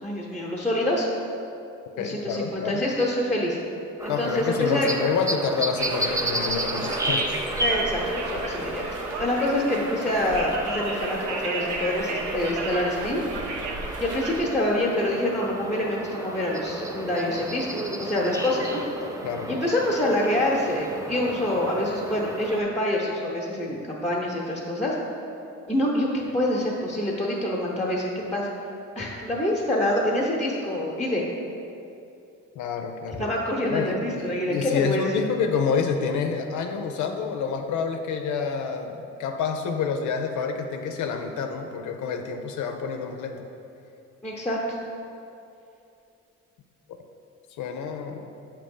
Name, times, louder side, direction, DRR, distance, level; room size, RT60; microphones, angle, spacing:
voice 1, 0.0-1.1 1.9-3.6 4.0-4.9 7.6-8.8 9.2-13.2 14.0-17.7 18.0-18.8 19.5-24.9 25.7-28.5 28.9-31.2 33.2-35.1 44.2-44.6, left 1 dB, 5° left, -5 dB, 0.8 m, -26 dB
voice 2, 2.0-2.8 4.1-7.3 19.2-19.7 32.6-33.2 33.7-43.4 47.6-48.3, left 6 dB, 75° left, 5 dB, 0.5 m, -28 dB
sound 1, 4.0-22.6, right 1 dB, 10° right, 0.4 m, -33 dB
Conversation, 5.8-14.4, right 3 dB, 80° right, 0.8 m, -33 dB
6.9 x 2.9 x 5.3 m, 2.7 s
cardioid pair, 90°, 30 cm